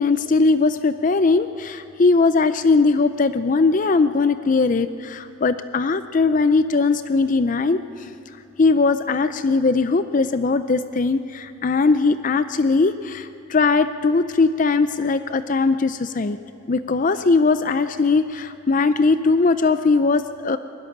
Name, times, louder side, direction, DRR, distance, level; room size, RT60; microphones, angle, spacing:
voice 1, 0.0-8.1 8.6-16.4 16.7-20.6, left 4 dB, 35° left, 11 dB, 0.4 m, -19 dB
21.0 x 13.0 x 10.0 m, 2.7 s
head